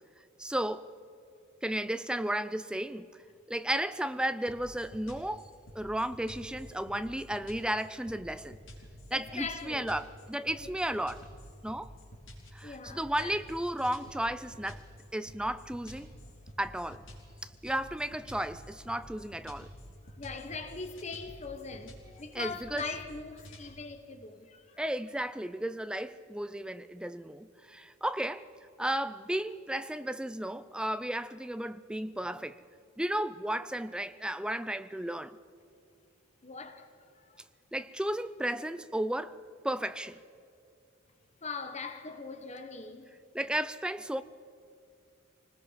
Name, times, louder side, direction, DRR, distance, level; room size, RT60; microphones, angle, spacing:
voice 1, 0.4-0.9 1.6-3.1 3.5-5.5 5.7-8.6 9.1-11.2 11.6-11.9 12.5-14.8 15.1-16.1 16.6-17.0 17.4-19.7 22.3-22.9 24.8-28.5 28.8-32.6 33.0-35.4 37.7-39.4 39.6-40.2 43.3-44.2, right 1 dB, 5° right, 0.5 m, -34 dB
sound 1, 4.5-23.7, equal, 70° left, 4.5 m, -50 dB
voice 2, 9.1-9.9 10.6-10.7 12.6-13.3 20.0-24.8 36.4-36.9 37.1-37.4 41.4-43.1, left 4 dB, 35° left, 1.1 m, -41 dB
25.5 x 20.0 x 5.7 m
head